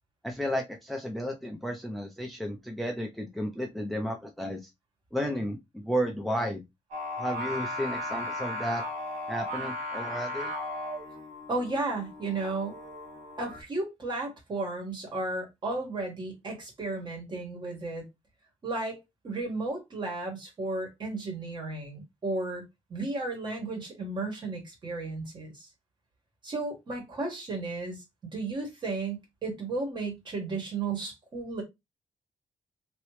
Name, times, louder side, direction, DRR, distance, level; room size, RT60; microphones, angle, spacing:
voice 1, 0.2-4.7 5.1-6.6 7.2-8.8 9.3-10.5, equal, ahead, 0.5 m, -33 dB
Singing, 6.9-13.6, left 1 dB, 85° right, 1.3 m, -36 dB
voice 2, 11.5-12.8 13.4-18.1 18.6-22.6 22.9-25.7 26.4-28.0 28.3-31.6, right 3 dB, 40° right, 1.6 m, -34 dB
3.0 x 2.9 x 3.1 m
cardioid pair, 125°, 11 cm